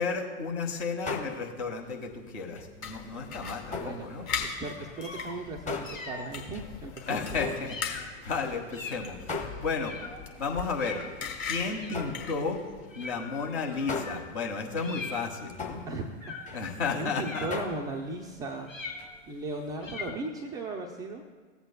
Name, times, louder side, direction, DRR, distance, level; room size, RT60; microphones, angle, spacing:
voice 1, 0.0-4.2 7.1-10.0 10.4-11.0 11.4-12.6 12.9-15.8 16.5-17.5, left 4 dB, 60° left, 2 dB, 1.7 m, -33 dB
sound 1, 1.1-2.1 2.5-4.3 4.6-8.9 9.3-10.1 10.7-17.1 17.5-19.2 19.4-19.7 20.0-20.1, left 3 dB, 20° left, 1.0 m, -40 dB
sound 2, 2.8-12.9, left 6 dB, 40° left, 1.3 m, -40 dB
voice 2, 3.3-7.5 15.9-16.1 16.5-18.7 19.3-21.2, right 2 dB, 10° right, 0 dB, 0.3 m, -37 dB
sound 3, 4.3-5.4 5.8-6.3 7.1-7.3 7.6-8.1 8.7-9.1 9.8-10.2 10.8-11.1 11.7-12.3 12.9-14.2 14.8-15.5 16.2-16.6 17.2-17.8 18.7-19.3 19.8-20.3, left 3 dB, 85° left, 1.2 m, -42 dB
16.0 x 8.0 x 2.2 m, 1.5 s
figure-of-eight pair, 100°, 38 cm